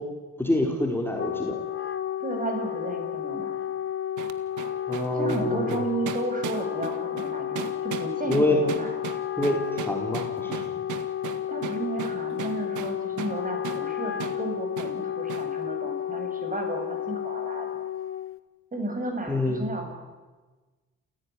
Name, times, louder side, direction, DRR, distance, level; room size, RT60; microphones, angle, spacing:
voice 1, 0.4-1.6 4.9-5.8 8.3-8.6 9.4-10.6 19.3-19.6, left 1 dB, 5° left, 0 dB, 4.4 m, -26 dB
Wind instrument woodwind instrument, 0.9-18.4, left 10 dB, 45° left, 1.5 m, -32 dB
voice 2, 2.2-3.5 5.1-9.0 11.5-17.7 18.7-19.9, right 2 dB, 25° right, 4 dB, 7.1 m, -33 dB
sound 1, 4.2-13.4 13.6-13.9 14.2-14.4 14.8-15.0 15.3-15.5, right 10 dB, 80° right, 1.9 m, -37 dB
29.0 x 16.0 x 10.0 m, 1.3 s
cardioid pair, 90°, 30 cm